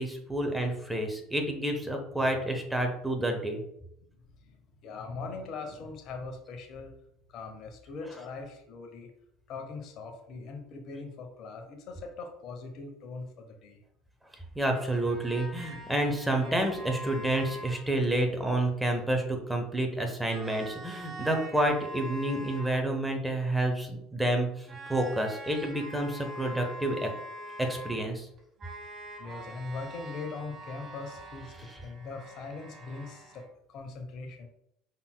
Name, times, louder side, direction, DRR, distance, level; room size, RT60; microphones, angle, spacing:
voice 1, 0.0-3.6 14.5-27.1 27.6-28.3, right 1 dB, 5° right, 3 dB, 1.0 m, -29 dB
voice 2, 1.3-2.5 4.4-4.6 4.8-6.9 7.3-9.1 9.5-13.8 29.2-34.5, left 4 dB, 50° left, 4 dB, 0.9 m, -41 dB
sound 1, 14.7-17.9 20.3-22.9 24.7-28.1 28.4-33.5, right 1 dB, 35° right, 1.2 m, -44 dB
5.4 x 4.1 x 2.2 m, 0.76 s
hypercardioid pair, 70°, 0 cm